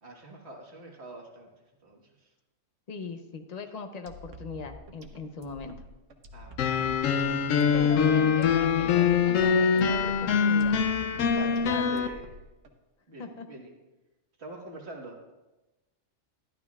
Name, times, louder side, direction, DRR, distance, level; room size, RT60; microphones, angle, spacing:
voice 1, 0.0-1.5 1.8-2.3 6.3-7.2 7.6-8.1 11.3-12.3 13.1-13.7 14.4-15.2, right 1 dB, 60° right, -1 dB, 1.8 m, -44 dB
voice 2, 2.9-5.8 7.7-10.8 13.2-13.5, left 4 dB, 40° left, 7 dB, 0.8 m, -40 dB
sound 1, 4.1-12.7, equal, 75° right, 1.3 m, -47 dB
sound 2, 6.6-12.1, left 6 dB, 85° left, 1.0 m, -24 dB
13.5 x 11.5 x 2.4 m, 1.1 s
omnidirectional pair, 1.3 m